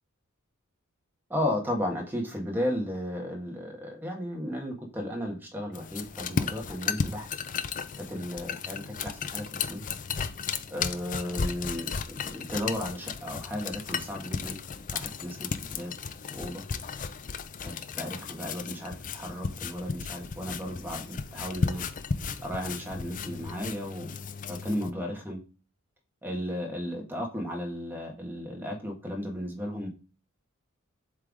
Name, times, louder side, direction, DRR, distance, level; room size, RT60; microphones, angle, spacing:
voice 1, 1.3-7.3 8.0-9.8 10.7-14.6 14.9-15.9 16.3-16.6 17.6-21.8 22.4-24.1 24.5-25.4 26.2-29.9, left 1 dB, 10° right, 0 dB, 1.7 m, -34 dB
sound 1, 5.7-24.9, left 5 dB, 40° left, 0.5 m, -34 dB
7.7 x 3.5 x 3.6 m, 0.34 s
head